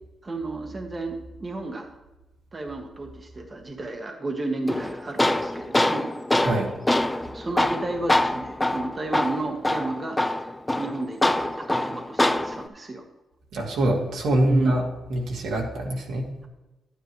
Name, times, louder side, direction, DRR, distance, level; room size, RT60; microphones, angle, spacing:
voice 1, 0.2-1.9 2.5-6.1 7.3-13.0 14.4-14.7, right 2 dB, 25° right, 3 dB, 1.1 m, -32 dB
Tools, 4.7-12.7, left 1 dB, 10° left, 0.4 m, -25 dB
voice 2, 13.5-14.8 15.1-16.3, right 1 dB, 85° right, -1 dB, 2.2 m, -24 dB
11.0 x 9.6 x 3.1 m, 1.1 s
cardioid pair, 120°, 0 cm